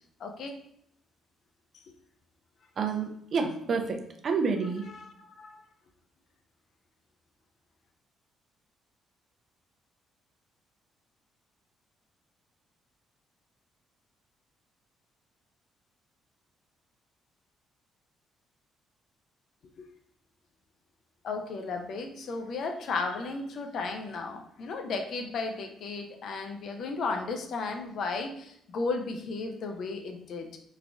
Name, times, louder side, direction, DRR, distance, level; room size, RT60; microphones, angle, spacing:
voice 1, 0.2-0.6 1.7-1.8 4.6-5.6 19.8-19.9 21.2-30.6, left 4 dB, 65° left, 5 dB, 0.5 m, -34 dB
voice 2, 2.8-4.9, right 5 dB, 55° right, 4 dB, 0.6 m, -29 dB
3.2 x 2.5 x 3.4 m, 0.73 s
hypercardioid pair, 50°, 0 cm